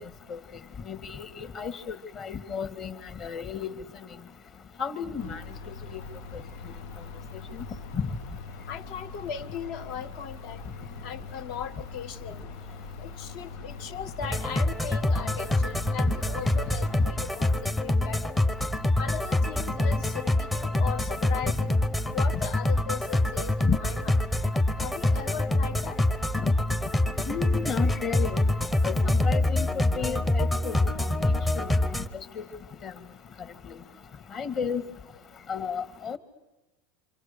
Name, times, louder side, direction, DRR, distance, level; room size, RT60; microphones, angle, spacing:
voice 1, 0.9-3.7 4.8-5.4 5.7-6.0 6.3-6.4 7.9-8.1 16.0-16.2 23.6-23.8 26.4-26.5 27.3-28.4 28.8-30.8 31.2-31.7 32.1-32.5 32.8-32.9 33.7-33.8 34.3-34.8 35.5-36.2, left 6 dB, 35° left, 9 dB, 1.6 m, -33 dB
sound 1, 5.2-17.2, left 4 dB, 85° left, 1.2 m, -42 dB
voice 2, 8.7-10.6 11.0-12.5 13.0-18.4 19.0-21.8 22.1-24.1 24.8-26.0, left 8 dB, 55° left, 8 dB, 1.3 m, -38 dB
sound 2, 14.2-32.1, left 1 dB, 10° left, 0.8 m, -26 dB
27.5 x 26.5 x 6.7 m, 1.1 s
supercardioid pair, 145°, 0 cm